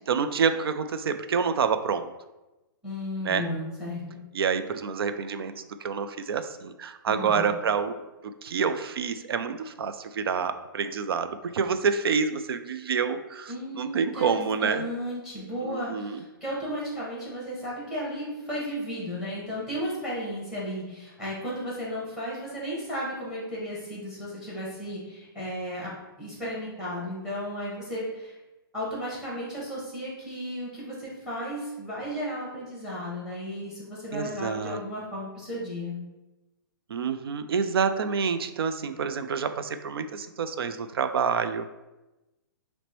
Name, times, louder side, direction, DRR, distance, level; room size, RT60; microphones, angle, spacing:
voice 1, 0.1-2.1 3.2-3.5 4.3-8.0 8.2-14.9 15.6-16.2 34.1-34.8 36.9-41.7, right 6 dB, 90° right, 10 dB, 0.4 m, -28 dB
voice 2, 2.8-4.2 7.1-7.5 13.5-25.9 26.2-28.4 28.7-36.0, equal, 5° right, -6 dB, 1.3 m, -34 dB
5.8 x 2.1 x 3.0 m, 1.1 s
hypercardioid pair, 155°, 12 cm